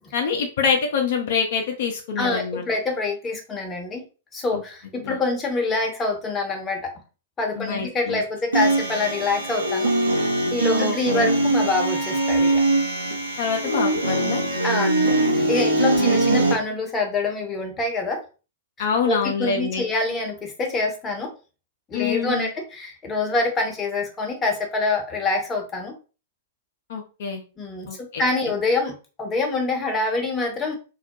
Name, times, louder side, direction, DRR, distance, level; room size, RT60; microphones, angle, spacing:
voice 1, 0.1-2.7 4.5-4.6 5.0-5.2 7.5-8.2 10.7-11.3 13.4-14.4 16.0-16.3 18.8-19.9 21.9-22.5 26.9-27.4 27.9-28.2, left 6 dB, 55° left, 2 dB, 0.5 m, -26 dB
voice 2, 2.2-4.0 4.3-6.9 7.4-12.6 14.6-18.2 19.1-21.3 21.9-25.9 27.6-30.8, left 3 dB, 20° left, 2 dB, 0.7 m, -26 dB
sound 1, 8.5-16.5, right 2 dB, 75° right, 0.7 m, -22 dB
2.3 x 2.0 x 2.7 m, 0.34 s
figure-of-eight pair, 100°, 0 cm